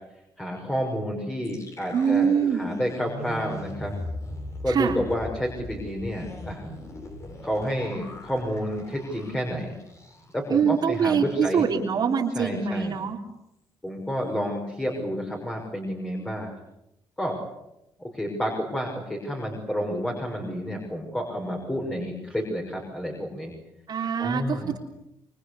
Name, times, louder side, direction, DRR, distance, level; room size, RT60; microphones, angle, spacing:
voice 1, 0.4-3.9 4.6-6.6 7.4-9.7 10.3-11.6 12.4-13.0 13.8-16.5 17.2-17.4 18.0-23.5 24.2-24.7, equal, 10° left, 1 dB, 6.1 m, -30 dB
sound 1, 1.4-10.5 10.8-10.9 11.3-11.7, left 1 dB, 35° left, 7.6 m, -39 dB
voice 2, 1.9-2.7 4.7-5.0 10.5-13.2 23.9-24.8, right 7 dB, 50° right, -1 dB, 3.6 m, -24 dB
26.0 x 24.0 x 8.4 m, 0.87 s
cardioid pair, 115°, 9 cm